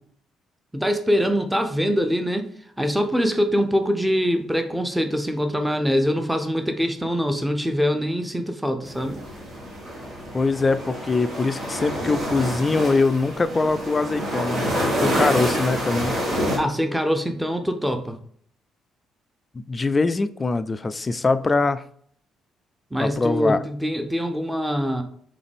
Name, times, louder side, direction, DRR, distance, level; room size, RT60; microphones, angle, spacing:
voice 1, 0.7-2.5 2.8-9.2 16.5-18.2 22.9-25.0, equal, 5° right, 0.7 m, -23 dB
sound 1, 8.8-16.6, equal, 65° right, 1.3 m, -27 dB
voice 2, 10.3-16.2 19.5-21.8 23.0-23.6, left 3 dB, 30° left, 0.3 m, -23 dB
3.9 x 3.4 x 3.3 m
hypercardioid pair, 50°, 0 cm